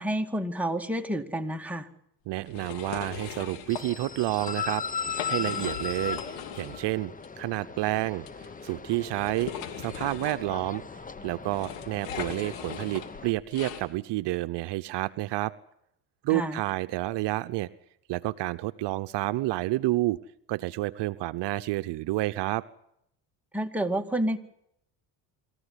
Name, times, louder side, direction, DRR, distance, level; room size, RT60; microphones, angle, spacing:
voice 1, 0.0-1.9 16.3-16.6 23.5-24.4, right 1 dB, 5° right, 3 dB, 2.3 m, -29 dB
voice 2, 2.3-4.8 5.2-9.5 9.8-15.5 16.2-17.7 18.1-20.2 20.5-22.6, right 18 dB, 65° right, 12 dB, 0.9 m, -30 dB
sound 1, 2.4-3.8 4.3-4.5 5.0-6.9 7.2-7.3 8.2-13.8, left 9 dB, 75° left, 3.0 m, -40 dB
sound 2, 3.7-13.3, left 6 dB, 20° left, 1.0 m, -37 dB
26.0 x 14.5 x 9.9 m, 0.77 s
supercardioid pair, 80°, 45 cm